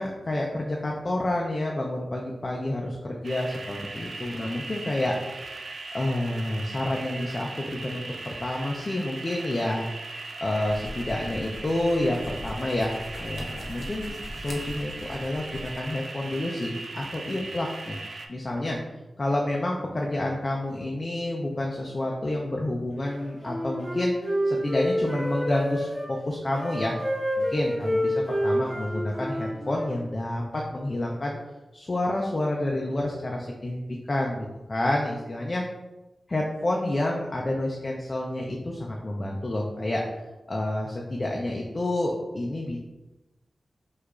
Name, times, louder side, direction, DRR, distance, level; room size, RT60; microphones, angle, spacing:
voice 1, 0.0-5.2 5.4-9.9 10.4-18.0 18.3-18.8 19.2-27.0 27.4-31.4 31.7-35.6 36.3-40.0 40.5-42.8, left 1 dB, 35° left, -1 dB, 0.4 m, -29 dB
sound 1, 3.2-18.3, right 3 dB, 60° right, 0.3 m, -39 dB
sound 2, 10.6-15.9, left 1 dB, 75° left, 0.7 m, -41 dB
Wind instrument woodwind instrument, 23.1-26.1 26.5-29.9, equal, 30° right, 1.1 m, -28 dB
4.6 x 2.4 x 2.3 m, 1.1 s
wide cardioid pair, 120°, 0 cm